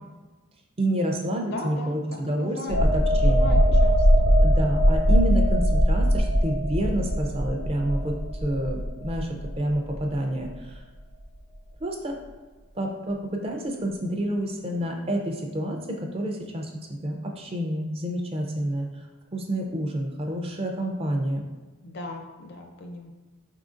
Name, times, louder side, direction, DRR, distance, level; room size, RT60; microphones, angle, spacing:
voice 1, 0.8-3.6 4.4-8.2 8.4-10.8 11.8-12.2 12.8-19.0 19.3-21.4, right 1 dB, 25° right, 2 dB, 0.4 m, -29 dB
voice 2, 1.5-2.8 3.1-4.3 21.8-23.1, left 2 dB, 50° left, 2 dB, 0.5 m, -38 dB
sound 1, 2.7-10.1 10.5-10.7, equal, 85° left, 0.7 m, -21 dB
4.3 x 3.7 x 2.5 m, 1.2 s
head